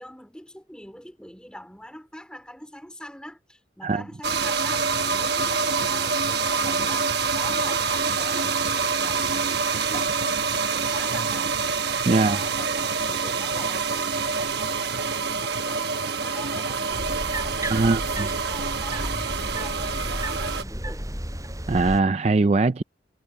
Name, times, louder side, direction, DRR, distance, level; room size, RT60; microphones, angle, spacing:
voice 1, 0.0-10.2 10.5-11.7 11.9-21.1, equal, 5° left, 3.9 m, -44 dB
sound 1, 4.2-20.6, right 4 dB, 55° right, 1.1 m, -26 dB
voice 2, 12.1-12.4 17.7-18.0 21.7-22.8, right 3 dB, 35° right, 0.4 m, -20 dB
sound 2, 16.9-22.0, right 1 dB, 15° right, 8.0 m, -33 dB
head